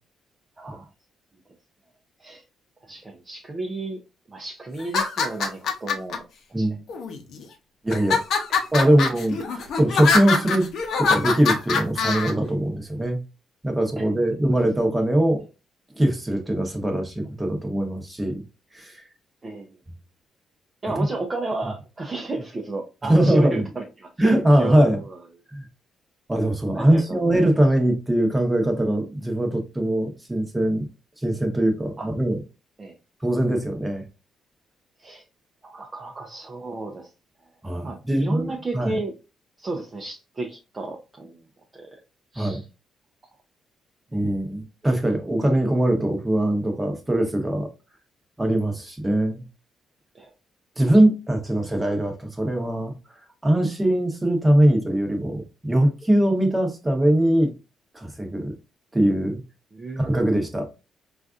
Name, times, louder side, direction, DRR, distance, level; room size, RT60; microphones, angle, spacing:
voice 1, 0.6-0.9 2.2-2.4 2.9-4.0 4.3-6.2 6.6-6.7 8.3-8.4 8.8-8.9 14.0-14.1 19.4-19.7 20.8-25.2 26.7-27.0 27.3-27.5 32.0-32.1 32.8-32.9 35.0-35.2 35.6-37.1 37.8-39.1 39.6-41.4 41.7-41.9 42.3-42.6 44.1-44.3 50.1-50.3 59.7-60.3, right 2 dB, 30° right, 0.6 m, -33 dB
sound 1, 4.8-6.2 6.9-7.4 7.9-12.3, left 5 dB, 70° left, 0.7 m, -24 dB
voice 2, 7.8-8.2 8.7-10.7 11.0-13.2 13.6-15.4 15.9-18.4 18.7-19.0 20.9-21.1 23.0-23.6 24.2-25.0 25.5-25.7 26.3-30.9 31.2-32.4 33.2-34.0 37.6-39.0 42.4-42.6 44.1-47.7 48.4-49.4 50.8-53.0 53.4-57.5 57.9-58.5 58.9-59.4 60.0-60.7, right 1 dB, 15° right, 1.0 m, -21 dB
4.0 x 2.4 x 2.4 m
cardioid pair, 90°, 0 cm